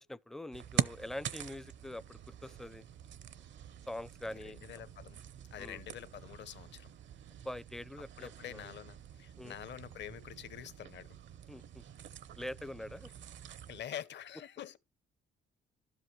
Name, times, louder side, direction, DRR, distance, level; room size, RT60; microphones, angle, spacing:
voice 1, 0.0-2.8 3.9-4.6 5.6-5.8 7.4-8.7 9.4-9.5 11.5-11.8 12.4-13.1, left 1 dB, ahead, 0.4 m, -44 dB
sound 1, 0.5-13.8, right 9 dB, 70° right, 0.8 m, -44 dB
voice 2, 4.4-5.2 5.5-6.9 8.2-11.2 13.7-14.8, left 10 dB, 65° left, 0.9 m, -46 dB
12.0 x 7.9 x 3.1 m
cardioid pair, 90°, 20 cm